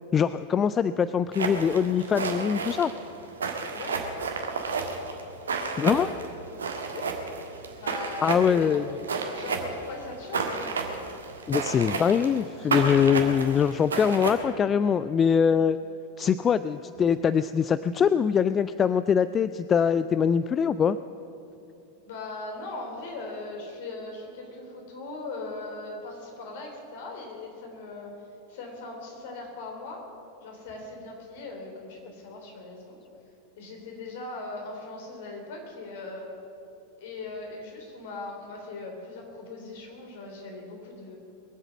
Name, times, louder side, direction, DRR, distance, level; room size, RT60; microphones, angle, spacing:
voice 1, 0.1-2.9 5.8-6.1 8.2-8.8 11.5-15.8 16.2-21.0, left 7 dB, 25° left, 14 dB, 0.3 m, -23 dB
sound 1, 1.3-14.3, right 4 dB, 70° right, 1.6 m, -31 dB
voice 2, 3.7-4.0 6.9-7.2 7.8-8.9 9.3-11.0 22.0-30.1 30.4-33.0 33.6-36.3 37.0-41.2, left 3 dB, 55° left, 1 dB, 3.5 m, -39 dB
22.0 x 8.0 x 7.4 m, 2.8 s
figure-of-eight pair, 90°, 0 cm